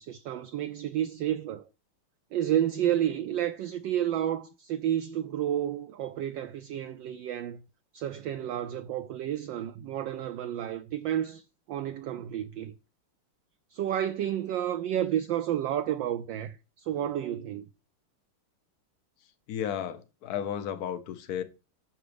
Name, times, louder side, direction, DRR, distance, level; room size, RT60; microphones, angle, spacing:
voice 1, 0.0-1.7 2.3-7.6 7.9-12.7 13.7-17.7, right 11 dB, 75° right, 1.1 m, -31 dB
voice 2, 19.5-21.4, left 9 dB, 65° left, 1.0 m, -33 dB
7.0 x 5.9 x 5.1 m
omnidirectional pair, 2.4 m